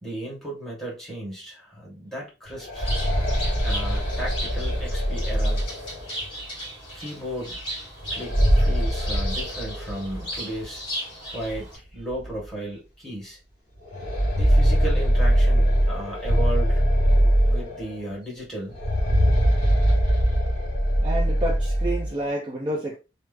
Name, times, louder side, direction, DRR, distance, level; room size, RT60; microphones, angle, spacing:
voice 1, 0.0-2.9 3.6-5.6 6.9-7.6 8.1-10.8 11.2-13.4 14.4-16.8 17.5-18.8, right 1 dB, ahead, 1.5 m, -35 dB
sound 1, 2.5-6.3 8.0-10.2 10.5-10.6 11.5-11.6 12.1-12.2 13.9-18.0 18.7-22.1, equal, 45° left, 1.7 m, -22 dB
Bird, 2.7-11.8, equal, 25° left, 1.8 m, -36 dB
voice 2, 21.0-23.0, right 1 dB, 25° right, 0.6 m, -29 dB
3.3 x 2.0 x 3.4 m
head